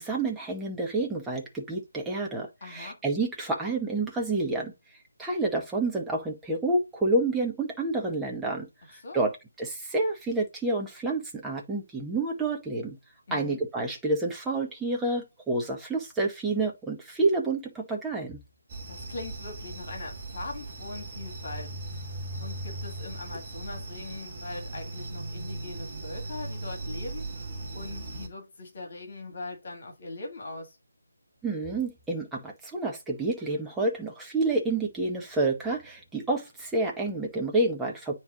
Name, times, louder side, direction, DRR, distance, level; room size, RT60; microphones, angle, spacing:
voice 1, 0.0-4.7 5.2-13.0 13.3-18.4 31.4-38.1, right 2 dB, 5° right, 1.0 m, -29 dB
voice 2, 2.6-3.0 9.0-9.3 13.3-13.6 18.9-22.1 22.4-27.3 27.7-30.8, left 3 dB, 40° left, 1.9 m, -41 dB
sound 1, 18.7-28.3, right 2 dB, 30° right, 1.2 m, -38 dB
9.0 x 3.2 x 3.8 m
figure-of-eight pair, 155°, 0 cm